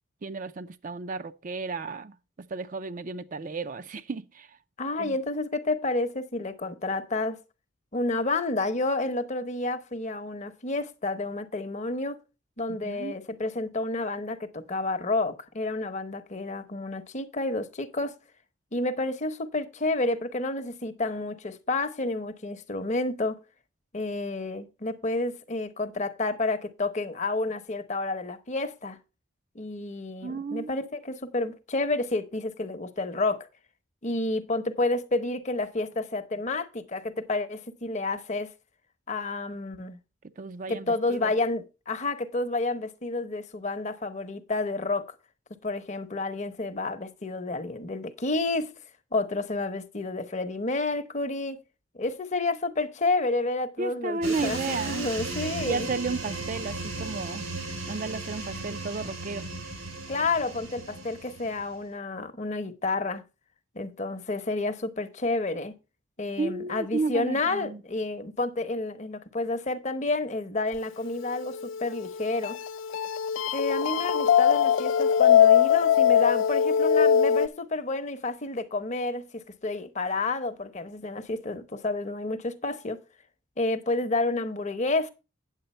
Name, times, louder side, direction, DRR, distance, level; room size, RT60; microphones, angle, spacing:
voice 1, 0.2-4.6 5.0-5.2 12.8-13.2 30.2-30.7 40.4-41.3 53.8-55.1 55.6-57.5 57.9-59.5 66.4-67.8, right 4 dB, 40° right, 0.4 m, -33 dB
voice 2, 4.8-7.4 7.9-12.2 12.6-18.1 18.7-23.4 23.9-29.0 29.5-33.5 34.0-38.5 39.1-40.0 40.7-45.1 45.6-48.7 49.1-51.6 51.9-55.9 60.1-63.2 63.7-65.7 66.2-72.6 73.5-83.0 83.6-85.1, left 2 dB, 35° left, 0.8 m, -30 dB
sound 1, 54.2-61.8, right 2 dB, 85° right, 3.5 m, -36 dB
sound 2, 71.2-77.5, left 8 dB, 65° left, 0.4 m, -22 dB
9.1 x 7.7 x 4.2 m
head